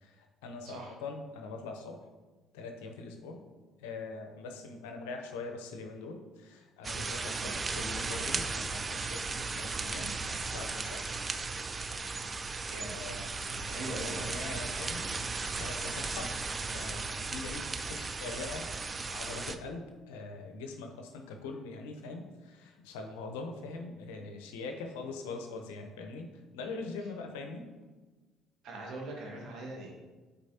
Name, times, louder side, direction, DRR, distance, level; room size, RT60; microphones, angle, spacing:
voice 1, 0.0-2.0 2.5-3.4 3.8-11.1 12.8-15.2 15.6-16.3 16.7-18.7 19.1-26.3 26.5-27.7, left 3 dB, 80° left, 4 dB, 0.8 m, -42 dB
sound 1, 6.8-19.6, right 4 dB, 30° right, 0.5 m, -36 dB
voice 2, 12.6-12.9 13.7-14.3 28.6-29.9, right 2 dB, 65° right, -2 dB, 1.9 m, -41 dB
9.0 x 4.1 x 2.9 m, 1.3 s
hypercardioid pair, 55°, 0 cm